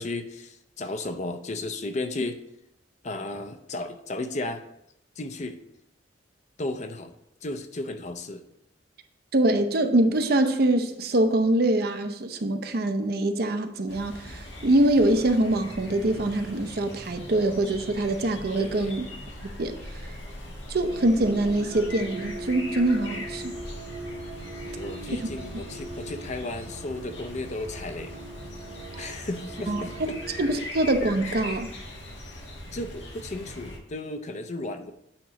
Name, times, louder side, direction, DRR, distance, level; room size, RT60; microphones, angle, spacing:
voice 1, 0.0-2.4 3.0-4.6 5.2-5.6 6.6-7.1 7.4-8.4 18.6-19.0 24.6-28.1 29.0-30.2 31.2-31.3 32.7-34.9, left 2 dB, 40° left, 8 dB, 0.5 m, -34 dB
voice 2, 9.3-19.1 19.4-20.1 20.7-23.6 29.0-29.1 29.7-29.9 30.4-31.7, right 1 dB, 55° right, 8 dB, 0.6 m, -24 dB
sound 1, 13.9-33.8, left 1 dB, 80° left, 1.4 m, -41 dB
sound 2, 20.9-30.6, right 2 dB, 90° right, 0.8 m, -41 dB
8.6 x 3.0 x 5.7 m, 0.80 s
head